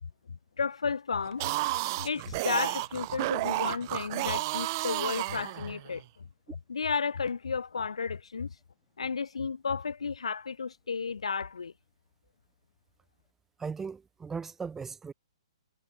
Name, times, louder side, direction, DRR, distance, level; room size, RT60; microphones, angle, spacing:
voice 1, 0.6-1.5 2.0-6.0 6.7-8.5 9.0-11.7, left 5 dB, 90° left, 1.7 m, -33 dB
sound 1, 1.3-6.0, right 22 dB, 40° right, 0.9 m, -32 dB
voice 2, 13.6-15.1, right 5 dB, 10° right, 2.2 m, -37 dB
hypercardioid pair, 145°, 3 cm